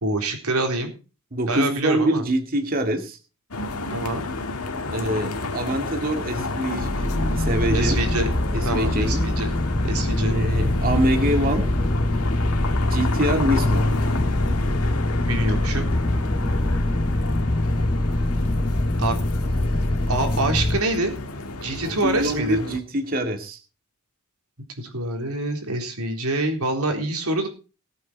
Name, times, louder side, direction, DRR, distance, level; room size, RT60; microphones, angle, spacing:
voice 1, 0.0-0.9 1.5-2.2 3.9-4.2 7.7-8.4 8.6-9.5 9.8-10.4 15.2-15.9 19.0-19.2 20.1-21.2 21.6-22.6 24.8-27.5, right 2 dB, 85° right, 4 dB, 3.9 m, -25 dB
voice 2, 1.3-3.2 4.9-8.0 8.5-9.3 10.3-11.7 12.9-13.8 21.8-23.6, right 1 dB, 40° right, 4 dB, 2.1 m, -25 dB
sound 1, 3.5-22.8, left 2 dB, 85° left, 2.0 m, -31 dB
sound 2, 6.8-20.8, left 1 dB, 20° left, 0.6 m, -23 dB
20.0 x 8.4 x 4.4 m, 0.34 s
head